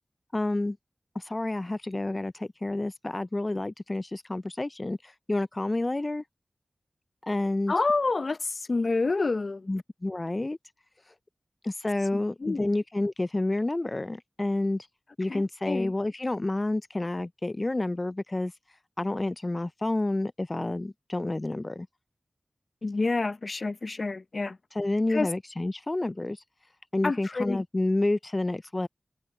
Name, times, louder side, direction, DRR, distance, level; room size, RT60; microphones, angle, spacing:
voice 1, 0.3-0.8 1.2-6.2 7.2-7.7 9.7-10.6 11.1-11.2 11.6-14.9 15.2-21.9 24.7-26.4 26.9-28.9, left 2 dB, 35° left, 0.3 m, -29 dB
voice 2, 7.7-9.7 12.1-12.7 15.3-15.9 22.8-24.6 25.1-25.3 27.0-27.6, left 3 dB, 65° left, 0.7 m, -28 dB
wide cardioid pair, 55°, 0 cm